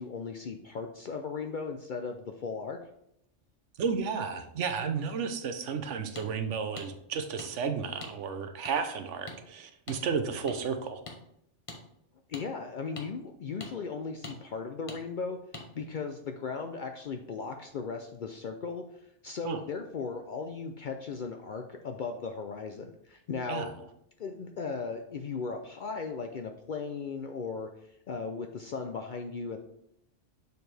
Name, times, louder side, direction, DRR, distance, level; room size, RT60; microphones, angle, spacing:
voice 1, 0.0-2.8 12.3-15.4 15.8-18.8 19.2-23.7 24.2-27.7 28.1-29.6, left 5 dB, 60° left, 5 dB, 0.5 m, -37 dB
voice 2, 3.8-11.0 19.4-19.6 23.5-23.7, right 6 dB, 75° right, 8 dB, 1.0 m, -32 dB
sound 1, 6.2-6.3 6.8-6.9 7.4-7.5 8.0-8.1 8.6-8.7 9.3-9.4 9.9-10.0 10.5-10.6 11.1-11.2 11.7-11.8 12.3-12.4 13.0-13.1 13.6-13.7 14.2-14.4 14.9-15.0 15.5-15.7, left 2 dB, 30° left, 0.8 m, -42 dB
6.6 x 4.4 x 3.3 m, 0.76 s
omnidirectional pair, 1.3 m